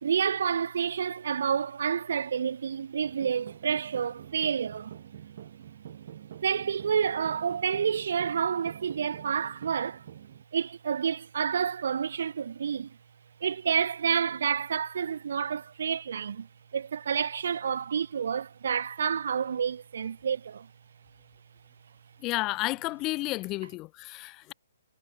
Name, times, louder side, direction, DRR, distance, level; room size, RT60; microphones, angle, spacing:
voice 1, 0.0-4.9 6.4-10.0 10.5-13.0 13.4-16.5 16.7-20.7, right 7 dB, 70° right, 0.4 m, -29 dB
sound 1, 3.0-10.4, right 10 dB, 55° right, 2.6 m, -46 dB
voice 2, 22.2-24.5, left 21 dB, 25° left, 0.8 m, -32 dB
hypercardioid pair, 145°, 0 cm